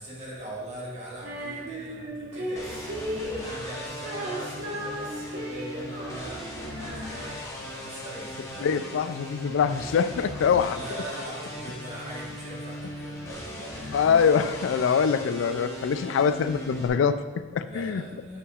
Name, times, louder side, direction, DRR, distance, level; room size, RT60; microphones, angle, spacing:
voice 1, 0.0-2.8 3.3-9.0 10.2-13.8 14.9-15.4 17.6-18.4, right 1 dB, 35° right, -6 dB, 1.8 m, -41 dB
Female singing, 1.2-7.7, right 1 dB, 70° right, 1.7 m, -36 dB
sound 1, 2.6-16.9, left 1 dB, 15° left, 0.9 m, -38 dB
voice 2, 8.6-10.8 13.9-18.0, left 6 dB, 75° left, 12 dB, 0.3 m, -24 dB
8.1 x 5.6 x 2.4 m, 1.3 s
head